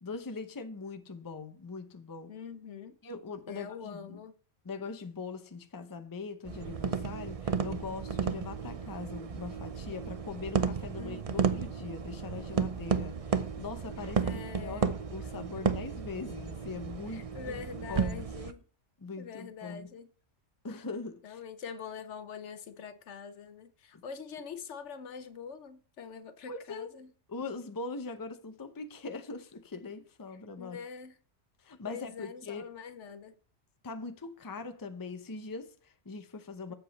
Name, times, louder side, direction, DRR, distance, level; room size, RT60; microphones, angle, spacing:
voice 1, 0.0-2.3 3.0-4.2 4.6-17.6 17.9-18.2 19.0-19.9 20.6-21.4 23.9-24.0 26.5-26.9 27.3-30.8 31.6-32.7 33.8-36.7, left 4 dB, 20° left, 0.7 m, -41 dB
voice 2, 2.3-3.0 3.5-4.3 11.0-11.5 14.0-14.9 15.6-15.7 17.1-18.6 19.2-20.1 21.2-27.1 30.6-31.2 31.9-33.3 36.7-36.8, left 6 dB, 70° left, 1.1 m, -44 dB
sound 1, 6.5-18.5, right 6 dB, 40° right, 0.5 m, -33 dB
8.0 x 7.0 x 4.1 m
omnidirectional pair, 1.3 m